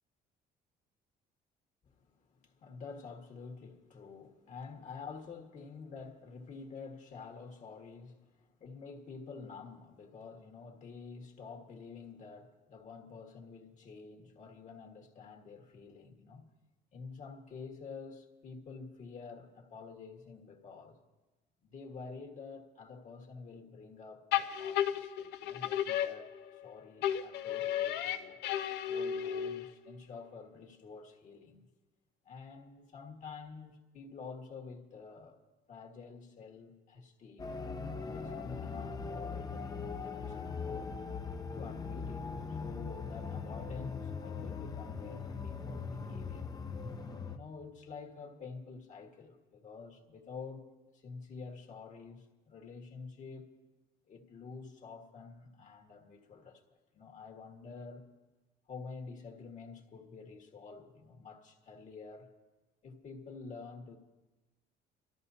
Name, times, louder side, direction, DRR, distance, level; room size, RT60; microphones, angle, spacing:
voice 1, 1.9-16.5 16.9-21.0 21.6-28.4 28.9-31.7 32.3-35.4 35.7-37.6 37.9-40.9 41.5-46.6 47.3-50.7 50.9-53.5 54.1-56.6 56.9-58.0 58.7-62.3 62.8-64.0, left 5 dB, 45° left, 1.7 m, -49 dB
sound 1, 24.3-26.7 27.0-29.9, left 10 dB, 85° left, 0.6 m, -34 dB
sound 2, 37.4-47.4, left 5 dB, 20° left, 0.7 m, -40 dB
25.0 x 13.5 x 2.8 m
cardioid pair, 110°, 17 cm